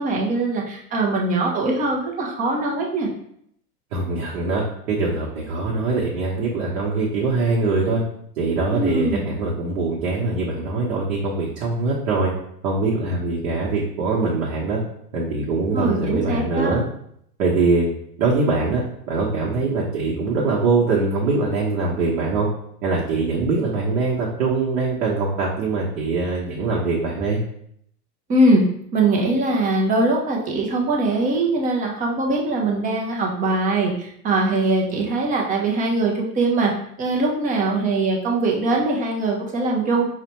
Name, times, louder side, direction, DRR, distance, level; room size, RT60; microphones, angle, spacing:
voice 1, 0.0-3.1 8.7-9.2 15.7-16.7 28.3-28.6 28.9-36.7 37.0-40.1, right 2 dB, 20° right, 0 dB, 0.5 m, -21 dB
voice 2, 3.9-4.6 4.9-8.0 8.4-12.3 12.6-14.8 15.1-16.8 17.4-17.9 18.2-22.5 22.8-27.4, right 3 dB, 60° right, -4 dB, 1.0 m, -22 dB
4.8 x 2.2 x 2.9 m, 0.70 s
hypercardioid pair, 115°, 48 cm